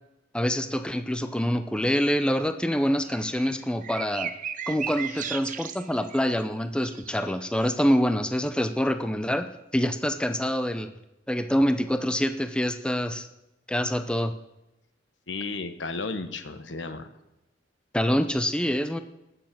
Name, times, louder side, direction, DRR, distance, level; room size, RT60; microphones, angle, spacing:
voice 1, 0.3-4.3 4.7-10.9 11.3-13.3 13.7-14.3 17.9-19.0, equal, 5° left, 9 dB, 0.6 m, -26 dB
sound 1, 2.8-6.4 6.8-7.7, right 8 dB, 45° right, 0.9 m, -36 dB
voice 2, 15.3-17.1, left 3 dB, 70° left, 9 dB, 1.2 m, -34 dB
19.5 x 7.2 x 7.5 m, 0.94 s
head